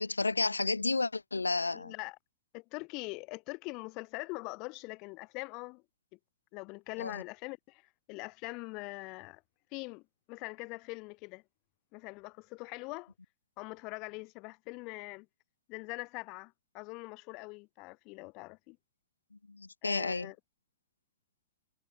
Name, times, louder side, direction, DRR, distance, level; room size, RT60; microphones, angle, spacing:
voice 1, 0.0-1.9 7.0-7.2 19.5-20.3, left 3 dB, 80° left, 0.7 m, -31 dB
voice 2, 1.7-2.2 2.5-5.8 6.1-6.2 6.5-9.4 9.7-10.0 10.3-11.4 11.9-13.1 13.6-15.3 15.7-18.8 19.8-20.4, left 27 dB, 40° left, 3.1 m, -43 dB
figure-of-eight pair, 90°, 0 cm